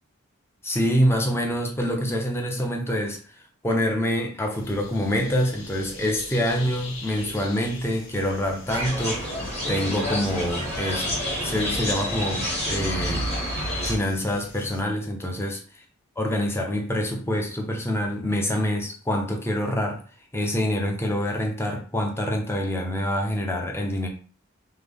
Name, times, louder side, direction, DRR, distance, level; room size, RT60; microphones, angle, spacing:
voice 1, 0.6-3.2 3.6-9.2 9.7-11.1 11.4-13.3 13.8-15.6 16.2-20.0 20.3-24.1, equal, 10° left, 1 dB, 0.7 m, -26 dB
sound 1, 4.5-14.8, left 2 dB, 70° left, 1.0 m, -43 dB
sound 2, 8.7-14.0, equal, 30° left, 1.5 m, -28 dB
5.6 x 2.2 x 3.5 m, 0.39 s
head